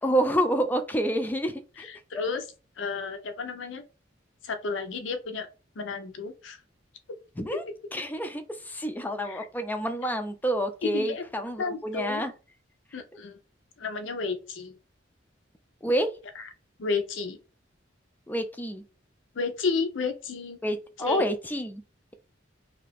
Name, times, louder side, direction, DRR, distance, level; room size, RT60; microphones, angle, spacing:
voice 1, 0.0-1.9 7.4-7.6 7.9-12.3 15.8-16.1 18.3-18.8 20.6-21.8, right 1 dB, 10° left, 0.3 m, -28 dB
voice 2, 1.8-2.4 2.8-3.8 4.4-5.5 5.8-6.6 9.2-9.4 10.9-11.2 11.6-12.2 12.9-13.4 13.8-14.8 16.8-17.4 19.3-20.6 21.0-21.3, left 4 dB, 80° left, 0.5 m, -32 dB
2.7 x 2.4 x 3.3 m
head